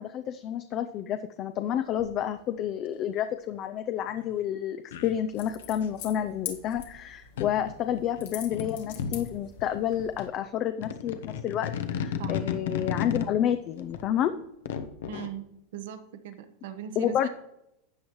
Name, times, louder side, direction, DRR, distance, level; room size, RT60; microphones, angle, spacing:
voice 1, 0.0-14.3 17.0-17.3, left 10 dB, 30° left, 9 dB, 0.4 m, -30 dB
sound 1, 2.0-2.2 4.1-4.2 4.9-5.9 6.8-6.9 7.4-9.3 9.6-10.0 10.8-13.3 13.8-15.3, left 8 dB, 90° left, 1.0 m, -34 dB
sound 2, 5.3-10.3, left 9 dB, 70° left, 1.6 m, -44 dB
voice 2, 15.1-15.5 15.7-17.3, right 8 dB, 65° right, 8 dB, 1.0 m, -39 dB
12.5 x 8.4 x 3.1 m, 0.85 s
supercardioid pair, 170°, 0 cm